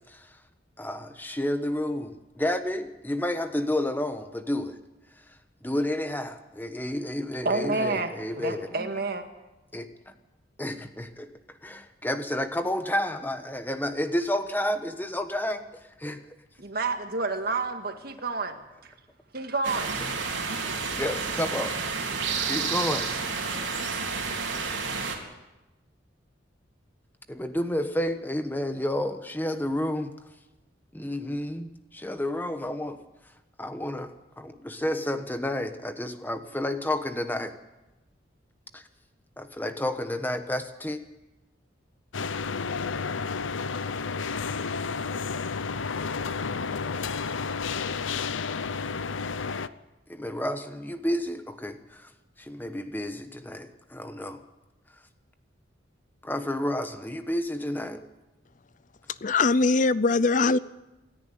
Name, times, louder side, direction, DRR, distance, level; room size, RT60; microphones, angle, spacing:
voice 1, 0.8-4.7 5.6-8.9 9.7-9.9 10.6-11.3 11.6-15.7 16.0-16.2 20.9-21.8 22.5-23.0 27.3-30.1 30.9-33.0 33.6-37.5 38.7-38.8 39.4-41.0 50.1-52.1 52.4-54.4 56.2-58.0, left 1 dB, 10° left, 8 dB, 1.2 m, -30 dB
voice 2, 7.4-9.2 16.6-18.6 19.3-19.9, right 3 dB, 55° right, 6 dB, 1.9 m, -29 dB
sound 1, 19.6-25.2, right 5 dB, 70° right, 3.7 m, -30 dB
sound 2, 42.1-49.7, left 5 dB, 85° left, 0.7 m, -31 dB
voice 3, 59.2-60.6, left 3 dB, 45° left, 17 dB, 0.6 m, -21 dB
27.0 x 10.5 x 9.4 m, 1.0 s
head